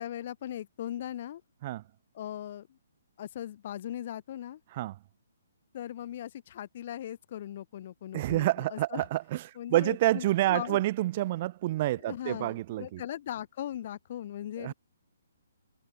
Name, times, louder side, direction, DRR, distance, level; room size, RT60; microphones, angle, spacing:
voice 1, 0.0-1.4 2.1-2.8 3.2-4.6 5.7-9.0 9.6-10.8 12.0-14.7, left 11 dB, 50° left, 4.3 m, -39 dB
voice 2, 8.1-13.0 14.6-14.7, right 15 dB, 40° right, 1.2 m, -28 dB
hypercardioid pair, 145°, 0 cm